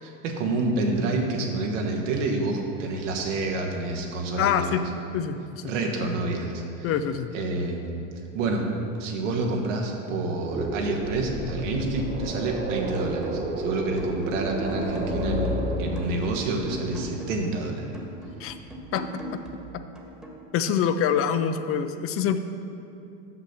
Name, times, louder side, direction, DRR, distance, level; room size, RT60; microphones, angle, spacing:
voice 1, 0.0-4.8 5.6-6.9 7.3-7.8 8.3-8.7 9.0-17.9, right 2 dB, 75° right, 1 dB, 1.3 m, -28 dB
voice 2, 4.4-4.8 5.1-5.6 6.8-7.3 18.4-18.5 18.9-19.1 20.5-22.4, left 8 dB, 40° left, 10 dB, 0.4 m, -25 dB
sound 1, 10.5-17.1, right 3 dB, 20° right, 0.7 m, -33 dB
sound 2, 11.0-16.1, left 5 dB, 70° left, 1.4 m, -36 dB
sound 3, 12.7-13.6 14.0-17.5 17.9-20.5, right 1 dB, ahead, 1.4 m, -41 dB
6.4 x 6.0 x 5.8 m, 2.6 s
hypercardioid pair, 80°, 37 cm